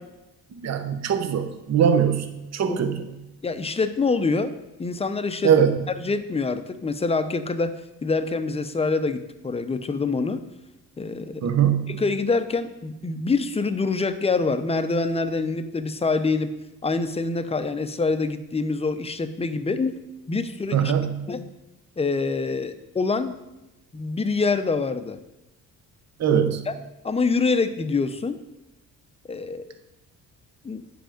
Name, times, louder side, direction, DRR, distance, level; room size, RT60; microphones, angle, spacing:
voice 1, 0.6-2.3 2.5-3.1 5.4-5.8 11.4-11.9 20.7-21.2 26.2-26.6, right 8 dB, 45° right, 8 dB, 0.8 m, -21 dB
voice 2, 2.7-3.0 3.4-4.5 4.8-5.5 6.0-7.7 8.0-10.4 11.0-11.5 11.9-16.5 16.8-19.9 20.3-20.9 21.3-21.5 22.0-23.4 23.9-25.2 26.3-26.4 26.7-26.8 27.0-28.4 29.3-29.7 30.6-30.8, left 4 dB, 15° left, 10 dB, 0.6 m, -25 dB
8.8 x 5.2 x 5.1 m, 0.98 s
cardioid pair, 100°, 36 cm